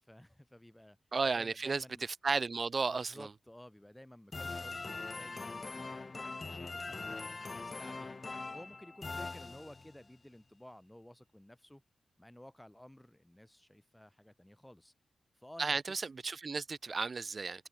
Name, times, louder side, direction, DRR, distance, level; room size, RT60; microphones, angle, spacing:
voice 1, 0.0-1.0 1.4-2.0 2.9-4.8 5.1-7.2 7.6-8.2 8.5-11.8 12.2-14.9 15.3-15.8, left 1 dB, 10° left, 4.3 m, -55 dB
voice 2, 1.1-3.3 15.6-17.7, right 4 dB, 45° right, 1.5 m, -34 dB
sound 1, 4.3-10.0, left 3 dB, 35° left, 1.4 m, -42 dB
cardioid pair, 85°, 0 cm